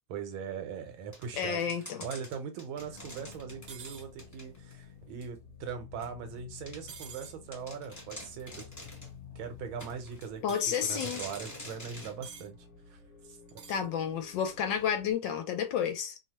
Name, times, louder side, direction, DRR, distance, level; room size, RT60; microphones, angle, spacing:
voice 1, 0.1-1.6 2.0-8.6 9.3-12.6 12.9-13.0 13.3-13.6, right 7 dB, 85° right, 1.6 m, -40 dB
sound 1, 1.1-4.8 5.2-5.3 6.0-6.1 6.7-6.8 7.2-7.3 7.5-9.2 9.8-10.3 10.7-12.2, left 1 dB, 10° left, 0.8 m, -46 dB
voice 2, 1.4-2.0 10.4-11.2 13.7-16.2, left 8 dB, 75° left, 1.3 m, -31 dB
sound 2, 2.8-15.1, left 6 dB, 40° left, 1.2 m, -52 dB
sound 3, 3.7-4.1 6.9-7.4 10.5-10.9 12.2-12.5 13.5-13.9, right 6 dB, 60° right, 0.9 m, -47 dB
3.4 x 2.1 x 2.8 m
omnidirectional pair, 2.2 m